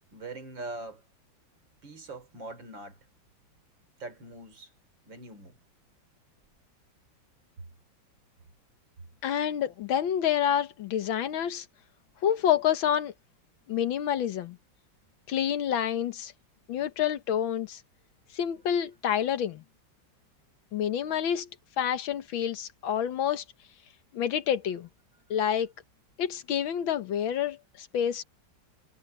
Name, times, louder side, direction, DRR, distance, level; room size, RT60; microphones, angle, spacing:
voice 1, 0.1-1.0 1.8-3.0 4.0-4.7 5.1-5.6, right 2 dB, 70° right, 4.2 m, -42 dB
voice 2, 9.2-11.7 12.2-13.1 13.7-14.6 15.3-16.3 16.7-17.8 18.3-19.6 20.7-21.5 21.8-23.4 24.1-24.9 25.3-25.7 26.2-28.2, left 9 dB, 85° left, 1.9 m, -28 dB
omnidirectional pair, 2.1 m